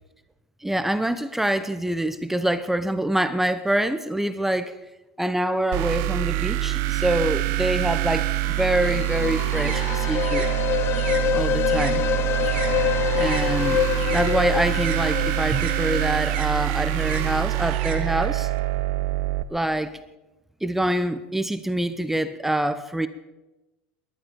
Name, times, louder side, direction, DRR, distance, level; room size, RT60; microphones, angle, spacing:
voice 1, 0.6-4.7 5.2-10.5 11.3-12.1 13.2-13.8 14.1-18.5 19.5-19.9 20.6-23.1, right 1 dB, 5° right, 12 dB, 0.9 m, -25 dB
sound 1, 5.7-19.4, right 16 dB, 60° right, 0.8 m, -25 dB
sound 2, 8.4-17.2, left 10 dB, 50° left, 1.2 m, -27 dB
sound 3, 8.9-13.5 13.8-18.6, right 8 dB, 85° right, 2.3 m, -38 dB
19.0 x 12.0 x 5.2 m, 1.0 s
supercardioid pair, 105°, 5 cm